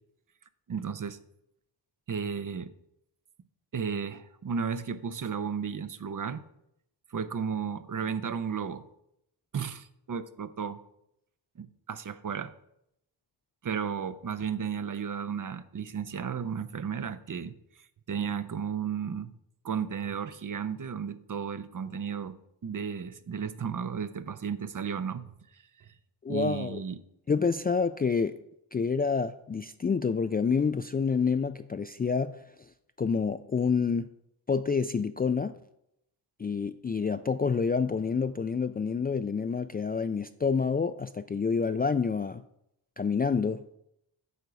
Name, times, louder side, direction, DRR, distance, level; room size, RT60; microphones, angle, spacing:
voice 1, 0.7-1.2 2.1-2.7 3.7-6.4 7.1-8.8 9.5-10.8 11.6-12.5 13.6-17.5 18.1-19.3 19.6-25.9 26.3-27.0, right 7 dB, 40° right, 13 dB, 0.7 m, -34 dB
voice 2, 26.2-26.8 27.3-28.4 28.7-32.4 33.0-34.1 34.5-35.5 36.4-42.4 43.0-43.6, left 5 dB, 20° left, 10 dB, 0.3 m, -28 dB
9.4 x 3.9 x 6.8 m, 0.79 s
cardioid pair, 50°, 47 cm